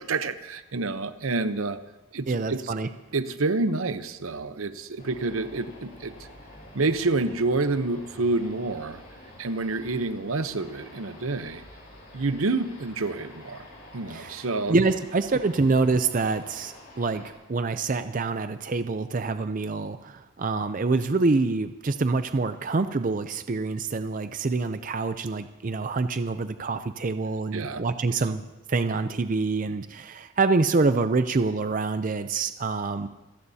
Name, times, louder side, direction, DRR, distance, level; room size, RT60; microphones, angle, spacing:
voice 1, 0.0-1.8 2.1-2.6 3.1-6.1 6.7-9.0 9.4-11.6 12.1-13.6 13.9-14.8 27.5-27.8 28.1-28.2, right 3 dB, 75° right, 11 dB, 0.8 m, -28 dB
voice 2, 2.3-2.9 14.1-33.1, right 3 dB, 40° right, 10 dB, 0.5 m, -26 dB
sound 1, 5.0-17.3, left 1 dB, 45° left, 7.0 m, -48 dB
26.5 x 16.5 x 2.8 m, 1.0 s
head